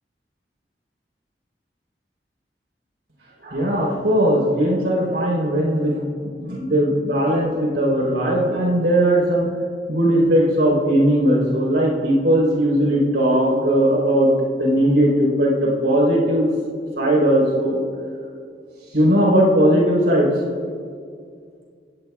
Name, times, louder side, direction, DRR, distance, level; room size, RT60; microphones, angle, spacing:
voice 1, 3.4-9.5 9.9-16.5 17.0-17.8 18.9-20.3, equal, 80° right, -4 dB, 4.6 m, -18 dB
25.5 x 19.0 x 2.5 m, 2.2 s
head